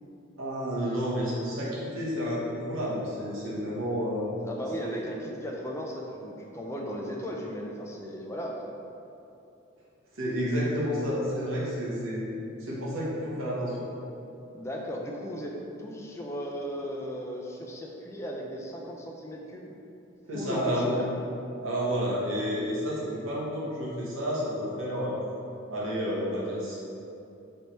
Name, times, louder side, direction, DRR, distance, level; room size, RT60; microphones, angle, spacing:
voice 1, 0.4-4.3 4.8-4.9 10.1-12.3 12.6-13.8 20.3-21.0 21.6-25.2 25.7-26.8, equal, 80° right, -6 dB, 1.0 m, -30 dB
voice 2, 4.4-8.8 14.5-19.8 20.3-21.1, equal, 15° left, -1 dB, 0.3 m, -36 dB
3.3 x 2.7 x 4.3 m, 2.7 s
head